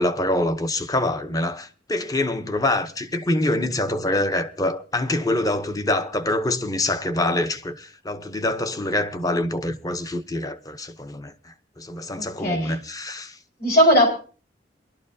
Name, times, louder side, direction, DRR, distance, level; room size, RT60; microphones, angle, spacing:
voice 1, 0.0-13.4, left 1 dB, 20° left, 0.7 m, -25 dB
voice 2, 12.2-12.7 13.6-14.1, equal, 55° left, 4.4 m, -18 dB
23.0 x 12.0 x 2.7 m
head